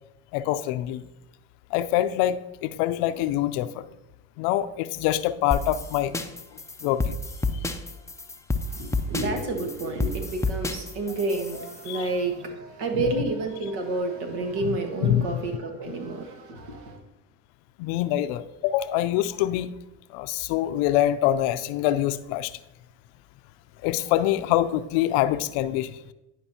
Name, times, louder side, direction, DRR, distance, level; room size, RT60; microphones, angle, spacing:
voice 1, 0.3-1.1 1.7-3.9 4.4-6.1 6.8-7.2 11.9-12.1 12.9-13.2 14.6-15.4 17.8-19.7 20.1-22.6 23.8-26.1, left 13 dB, 75° left, 0.6 m, -25 dB
sound 1, 5.5-11.9, left 2 dB, 5° left, 0.5 m, -30 dB
voice 2, 8.7-17.0, right 2 dB, 60° right, 1.6 m, -30 dB
11.0 x 5.2 x 2.8 m
supercardioid pair, 85°, 44 cm